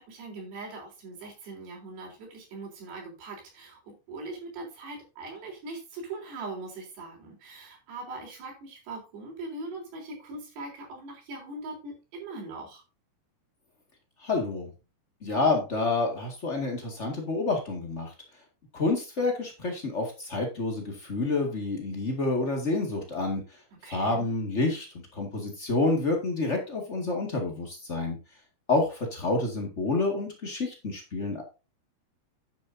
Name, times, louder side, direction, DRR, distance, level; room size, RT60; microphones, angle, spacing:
voice 1, 0.0-12.8 23.8-24.3, right 2 dB, 75° right, 0 dB, 5.8 m, -41 dB
voice 2, 14.2-14.7 15.2-18.1 18.7-23.4 23.8-28.2 28.7-31.4, left 3 dB, 90° left, 1 dB, 0.6 m, -28 dB
10.0 x 9.8 x 2.7 m, 0.30 s
omnidirectional pair, 4.9 m